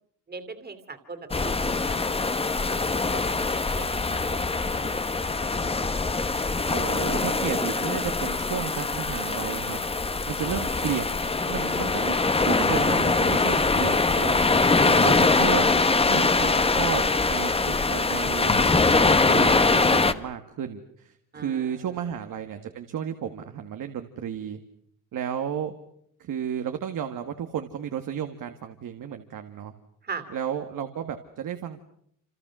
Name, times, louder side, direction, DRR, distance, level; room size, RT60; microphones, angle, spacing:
voice 1, 0.3-3.4 3.7-4.9 13.3-13.6 14.3-14.5 21.3-21.7 22.0-22.1 30.0-30.2, right 4 dB, 30° right, 8 dB, 2.8 m, -41 dB
sound 1, 1.3-20.1, left 3 dB, 20° left, 1.1 m, -23 dB
voice 2, 6.7-9.8 10.3-12.2 12.5-14.4 14.8-24.6 25.1-25.7 26.2-29.7 30.3-31.8, right 9 dB, 80° right, 6 dB, 2.0 m, -33 dB
29.0 x 28.5 x 6.3 m, 0.69 s
wide cardioid pair, 150°, 32 cm